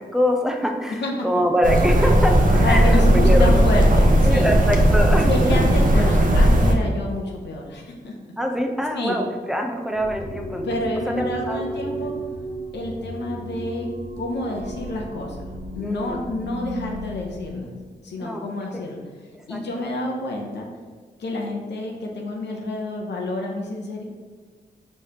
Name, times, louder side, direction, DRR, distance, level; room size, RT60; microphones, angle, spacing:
voice 1, 0.0-3.6 4.2-5.6 5.9-6.1 8.4-10.8 11.1-12.0 15.8-16.2 18.2-18.5 18.7-18.9 19.5-19.8, equal, 5° right, 3 dB, 0.6 m, -24 dB
sound 1, 1.6-6.7, right 1 dB, 50° right, 0.7 m, -16 dB
voice 2, 2.6-4.5 5.2-8.1 8.9-9.2 10.6-12.1 12.7-13.9 14.2-15.4 15.8-17.7 18.0-19.0 19.5-20.7 21.2-24.0, left 1 dB, 80° left, 0 dB, 0.6 m, -28 dB
sound 2, 9.9-17.5, right 1 dB, 75° right, 1.2 m, -34 dB
4.8 x 3.2 x 2.8 m, 1.5 s
cardioid pair, 55°, 18 cm